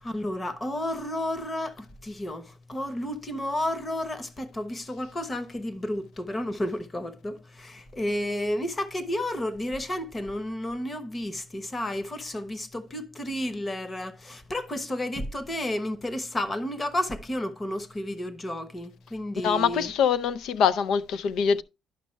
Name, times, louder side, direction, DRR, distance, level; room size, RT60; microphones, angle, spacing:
voice 1, 0.0-19.9, left 1 dB, 25° left, 1.0 m, -32 dB
voice 2, 19.4-21.6, left 7 dB, 80° left, 0.5 m, -24 dB
11.0 x 5.4 x 3.2 m
cardioid pair, 90°, 0 cm